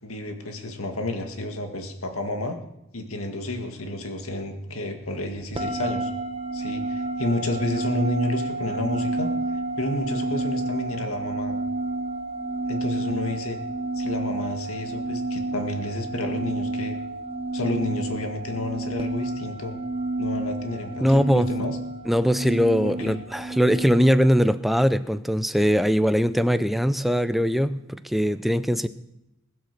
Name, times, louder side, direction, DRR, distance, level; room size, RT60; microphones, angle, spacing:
voice 1, 0.0-2.6 2.9-6.1 6.5-9.3 9.8-11.5 12.7-13.6 14.0-17.0 17.5-19.7 20.2-21.8 22.8-23.1, left 2 dB, 80° left, 5 dB, 2.0 m, -30 dB
sound 1, 5.5-24.3, right 2 dB, 25° right, 1.1 m, -30 dB
voice 2, 21.0-21.5 22.1-28.9, equal, ahead, 11 dB, 0.5 m, -21 dB
21.0 x 7.7 x 6.8 m, 0.89 s
head